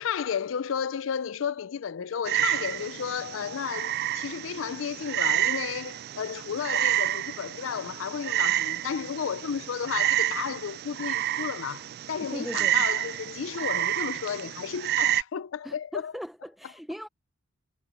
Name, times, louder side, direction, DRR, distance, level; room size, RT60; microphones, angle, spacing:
voice 1, 0.0-16.1, left 7 dB, 70° left, 0.4 m, -33 dB
Frog, 2.3-15.2, right 13 dB, 50° right, 0.4 m, -29 dB
voice 2, 12.2-12.8 15.6-17.1, equal, ahead, 0.6 m, -38 dB
head